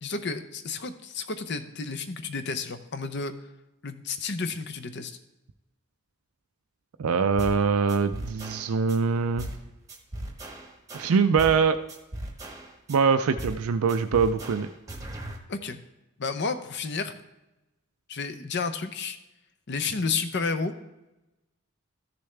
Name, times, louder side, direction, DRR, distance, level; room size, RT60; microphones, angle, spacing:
voice 1, 0.0-3.3 3.8-5.2 15.5-15.8 16.2-17.1 18.1-19.2 19.7-20.7, left 4 dB, 55° left, 10 dB, 0.7 m, -31 dB
voice 2, 7.0-9.5 10.9-11.8 12.9-14.7, right 5 dB, 85° right, 8 dB, 0.4 m, -23 dB
sound 1, 7.4-7.6 7.9-9.0 9.4-9.6 9.9-11.6 11.9-13.0 13.4-13.6 13.9-15.4, right 1 dB, 15° right, 1.0 m, -38 dB
14.0 x 6.8 x 3.3 m, 0.98 s
head